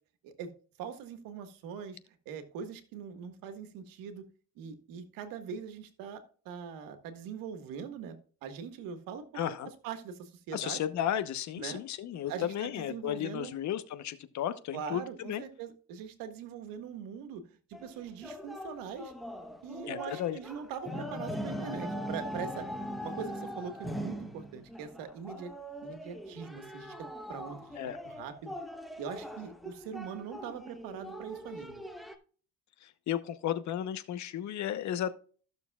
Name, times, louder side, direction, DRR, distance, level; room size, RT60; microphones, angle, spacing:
voice 1, 0.8-2.0 2.3-4.2 4.6-9.6 9.8-10.8 11.6-11.8 12.3-13.5 14.7-19.1 19.6-22.7 23.0-25.5 25.8-26.9 27.3-27.8 28.1-28.5 29.0-31.8, right 7 dB, 85° right, 8 dB, 1.6 m, -42 dB
voice 2, 9.3-9.7 10.5-15.4 19.9-20.4 27.8-28.0 32.8-35.1, left 10 dB, 60° left, 12 dB, 1.0 m, -34 dB
sound 1, 17.7-32.1, equal, ahead, 1.0 m, -41 dB
14.5 x 6.7 x 2.3 m, 0.42 s
cardioid pair, 120°, 33 cm